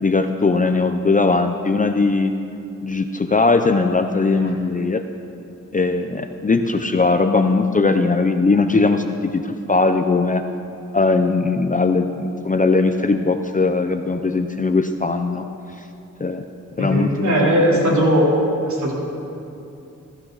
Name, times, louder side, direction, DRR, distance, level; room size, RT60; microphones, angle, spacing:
voice 1, 0.0-2.3 2.8-5.0 5.7-10.4 10.9-15.4 16.2-16.4 16.8-17.4 17.8-17.9, left 3 dB, 25° left, 6 dB, 0.5 m, -19 dB
voice 2, 16.8-18.3 18.7-18.9, equal, 70° right, -4 dB, 3.4 m, -18 dB
22.0 x 14.5 x 4.0 m, 2.7 s
wide cardioid pair, 150°, 30 cm